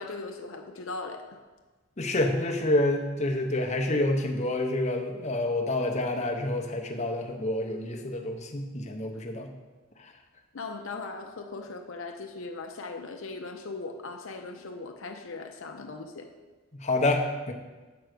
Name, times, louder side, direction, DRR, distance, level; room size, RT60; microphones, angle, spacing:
voice 1, 0.0-1.4 10.5-16.3, left 3 dB, 65° left, 4 dB, 0.6 m, -39 dB
voice 2, 2.0-9.5 16.7-17.5, left 1 dB, 30° left, 2 dB, 0.7 m, -28 dB
7.8 x 4.7 x 6.5 m, 1.3 s
head